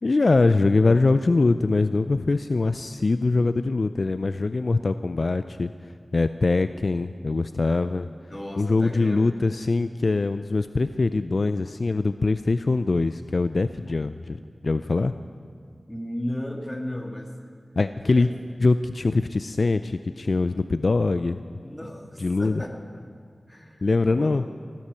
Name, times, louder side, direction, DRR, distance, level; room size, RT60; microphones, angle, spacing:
voice 1, 0.0-5.7 6.1-8.1 8.6-14.4 14.6-15.1 17.8-18.3 18.6-21.4 22.2-22.6 23.8-24.4, left 3 dB, 60° left, 11 dB, 0.4 m, -23 dB
voice 2, 8.3-9.6 15.9-17.3 17.8-18.3 21.6-23.1 23.5-24.5, left 1 dB, 15° left, 1 dB, 2.0 m, -36 dB
15.5 x 11.5 x 6.9 m, 2.2 s
wide cardioid pair, 90°, 0 cm